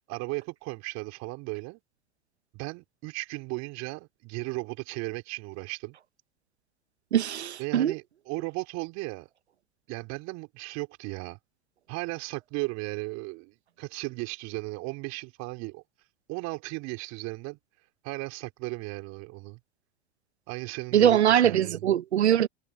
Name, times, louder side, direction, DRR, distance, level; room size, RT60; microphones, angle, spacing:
voice 1, 0.1-1.8 2.5-6.0 7.6-9.3 9.9-11.4 11.9-15.8 16.3-17.6 18.0-19.6 20.5-21.8, right 24 dB, 55° right, 4.1 m, -36 dB
voice 2, 7.1-7.9 20.9-22.5, right 10 dB, 85° right, 1.2 m, -22 dB
hypercardioid pair, 90°, 33 cm